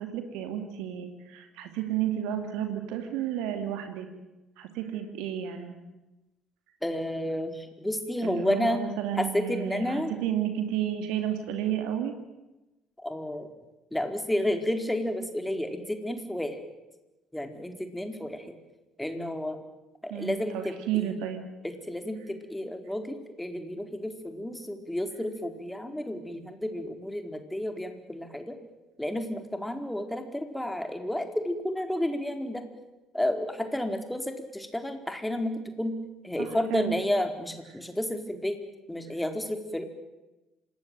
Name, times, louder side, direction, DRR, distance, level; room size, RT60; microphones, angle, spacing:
voice 1, 0.0-4.1 4.6-5.8 8.2-12.1 20.1-21.4 36.4-37.0, right 10 dB, 65° right, 7 dB, 2.7 m, -32 dB
voice 2, 6.8-8.8 9.2-10.1 13.0-13.5 13.9-16.6 17.3-18.5 19.0-19.6 20.0-21.2 21.6-28.6 29.0-32.7 33.1-36.0 36.2-38.6 38.9-39.8, left 1 dB, 5° left, 6 dB, 4.4 m, -31 dB
26.5 x 19.5 x 9.3 m, 1.0 s
figure-of-eight pair, 50°, 0 cm